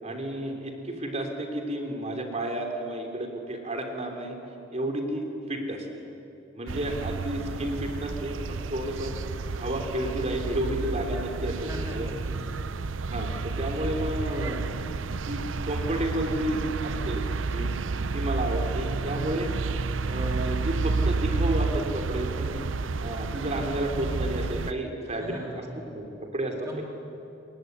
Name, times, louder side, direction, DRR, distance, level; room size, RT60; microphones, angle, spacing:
voice 1, 0.0-4.4 4.7-6.0 6.5-9.1 9.5-12.1 13.1-14.7 15.3-17.2 17.5-17.8 18.1-19.5 20.1-22.6 23.0-25.6 25.9-26.8, right 1 dB, 35° right, 3 dB, 3.5 m, -31 dB
sound 1, 6.7-24.7, right 3 dB, 90° right, 0.7 m, -30 dB
voice 2, 11.5-12.6 25.0-25.9 26.6-26.8, equal, 20° right, -2 dB, 2.7 m, -40 dB
27.5 x 21.5 x 9.7 m, 2.9 s
head